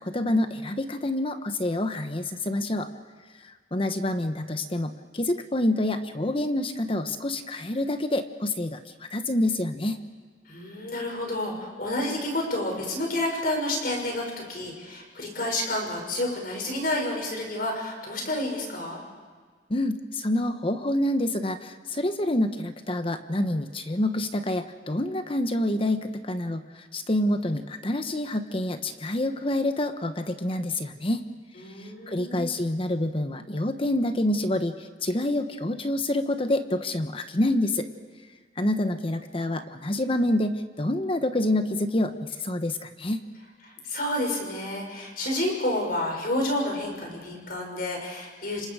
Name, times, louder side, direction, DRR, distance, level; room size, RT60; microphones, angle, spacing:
voice 1, 0.0-2.9 3.4-10.0 19.7-31.2 31.8-37.9 38.6-43.2, left 1 dB, 30° left, 8 dB, 1.0 m, -27 dB
voice 2, 10.5-19.0 31.6-32.5 43.7-48.7, left 1 dB, 55° left, 1 dB, 6.4 m, -30 dB
29.0 x 26.0 x 4.9 m, 1.5 s
head